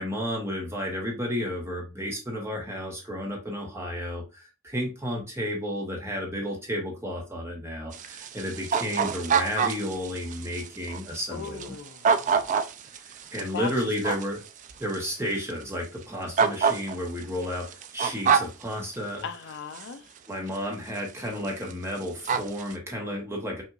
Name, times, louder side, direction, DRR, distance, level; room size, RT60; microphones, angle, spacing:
voice 1, 0.0-11.7 13.0-14.4 14.8-19.2 20.3-23.6, equal, 10° right, 1.1 m, -32 dB
sound 1, 7.9-15.1 15.5-15.6 16.4-18.6 19.7-19.9 20.5-20.6 21.0-21.2 21.4-21.7 22.0-22.7, right 6 dB, 35° right, 0.3 m, -26 dB
voice 2, 11.3-12.7 13.5-13.7 19.2-20.1, left 6 dB, 55° left, 0.4 m, -38 dB
5.6 x 2.7 x 2.5 m
head